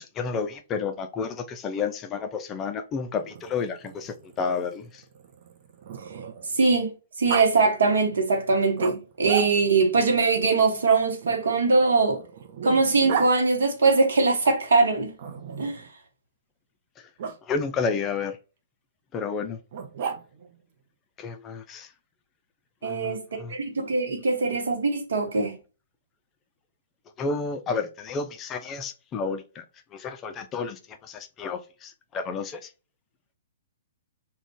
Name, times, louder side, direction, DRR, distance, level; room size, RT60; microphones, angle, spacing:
voice 1, 0.0-5.0 17.5-18.4 19.1-19.6 21.2-21.9 22.8-23.5 27.2-29.6 29.9-32.6, left 5 dB, 25° left, 0.3 m, -31 dB
Growling, 3.2-6.6 7.3-7.5 8.8-9.9 11.2-13.3 15.2-15.9 17.2-17.4 19.7-20.5, right 7 dB, 45° right, 0.4 m, -34 dB
voice 2, 6.6-6.9 7.2-12.2 12.6-15.1 15.6-15.8 22.8-23.2 23.5-25.6, right 4 dB, 65° right, 0.8 m, -22 dB
2.4 x 2.1 x 3.5 m
figure-of-eight pair, 115°, 0 cm